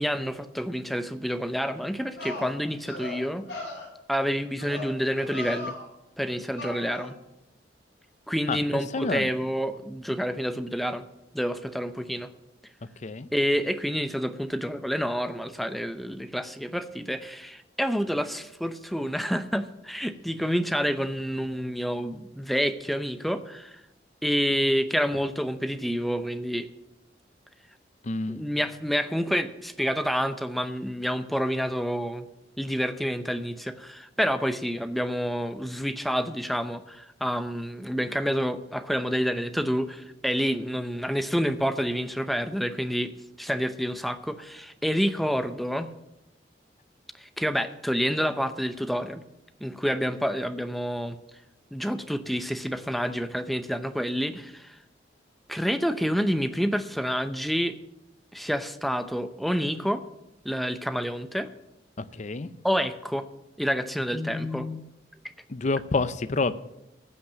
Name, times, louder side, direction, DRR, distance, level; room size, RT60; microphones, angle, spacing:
voice 1, 0.0-3.4 4.1-5.7 6.2-7.2 8.3-11.0 11.3-12.3 13.3-23.8 24.2-26.7 28.3-32.3 32.6-45.9 47.2-49.2 49.6-51.2 51.7-54.8 55.5-57.8 58.3-60.0 60.4-61.5 62.6-63.3 63.6-64.8, equal, ahead, 10 dB, 0.6 m, -28 dB
sound 1, 1.7-1.8 2.2-2.5 2.9-3.2 3.5-3.9 4.6-4.9 5.2-5.8 6.6-7.1, left 2 dB, 65° left, 6.1 m, -37 dB
voice 2, 8.9-9.3 13.0-13.3 28.0-28.4 62.0-62.5 65.5-66.5, left 3 dB, 40° left, 13 dB, 0.6 m, -28 dB
15.5 x 5.9 x 7.4 m, 0.89 s
head